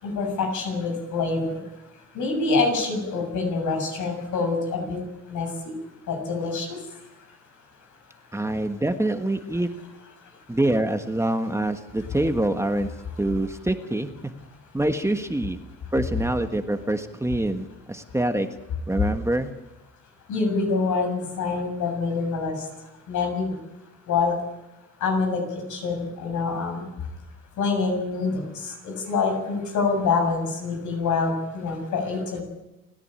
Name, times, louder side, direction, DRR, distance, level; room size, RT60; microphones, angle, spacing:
voice 1, 0.0-1.6 2.1-5.0 5.3-5.7 6.1-6.8 20.3-22.6 23.1-23.5 24.1-24.4 25.0-25.4 25.7-26.8 27.6-32.4, left 4 dB, 80° left, 3 dB, 7.3 m, -26 dB
voice 2, 8.3-9.7 10.5-12.9 13.2-14.3 14.7-15.6 15.9-18.5 18.9-19.5, right 1 dB, 10° right, 7 dB, 1.5 m, -25 dB
29.5 x 11.0 x 9.0 m, 0.97 s
cardioid pair, 90°, 30 cm